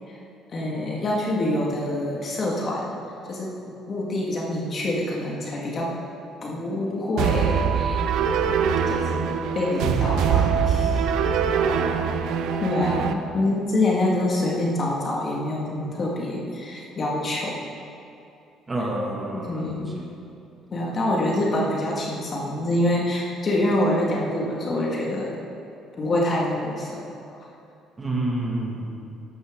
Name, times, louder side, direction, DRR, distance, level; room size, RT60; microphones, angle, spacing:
voice 1, 0.5-3.0 3.3-3.6 3.9-5.9 6.4-8.0 8.9-11.1 12.6-17.5 19.3-19.9 20.7-25.3 26.0-27.0 27.3-27.4, left 1 dB, 40° left, -3 dB, 2.2 m, -26 dB
sound 1, 7.2-13.1, right 7 dB, 75° right, 0.7 m, -23 dB
voice 2, 11.5-12.2 18.7-20.1 28.0-28.9, right 1 dB, 20° right, -2 dB, 2.4 m, -29 dB
13.0 x 11.5 x 4.0 m, 2.7 s
cardioid pair, 115°, 0 cm